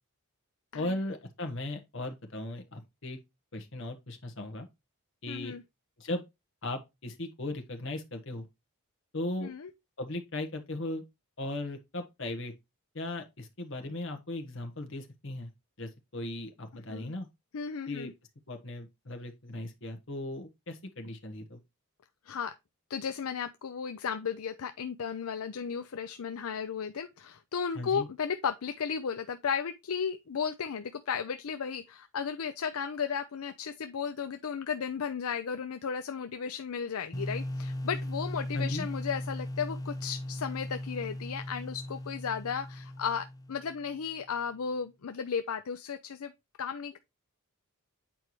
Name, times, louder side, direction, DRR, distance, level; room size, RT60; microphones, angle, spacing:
voice 1, 0.7-3.2 3.5-4.7 5.2-5.5 6.0-6.2 6.6-8.5 9.1-9.5 10.0-11.0 11.4-12.5 12.9-15.5 15.8-17.3 17.9-18.1 18.5-21.6 27.7-28.1 38.5-38.9, left 1 dB, 60° left, 1.4 m, -37 dB
voice 2, 5.3-5.6 9.4-9.7 16.9-17.1 17.5-18.1 22.3-22.5 22.9-46.3 46.6-47.0, left 6 dB, 75° left, 0.5 m, -34 dB
sound 1, 37.1-43.9, left 1 dB, 15° left, 0.5 m, -38 dB
8.7 x 4.6 x 3.1 m
head